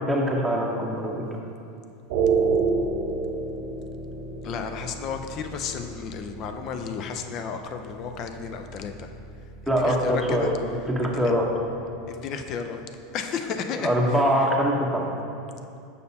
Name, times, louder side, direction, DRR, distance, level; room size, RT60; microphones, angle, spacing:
voice 1, 0.1-1.3 9.7-10.5 10.9-11.5 13.8-15.1, equal, ahead, -2 dB, 1.0 m, -23 dB
sound 1, 2.1-12.3, right 4 dB, 65° right, 0.6 m, -31 dB
voice 2, 4.4-9.1 9.6-10.5 11.0-11.3 12.1-12.8 13.1-14.5, left 6 dB, 50° left, 7 dB, 0.5 m, -33 dB
6.6 x 5.4 x 2.8 m, 2.5 s
hypercardioid pair, 105°, 0 cm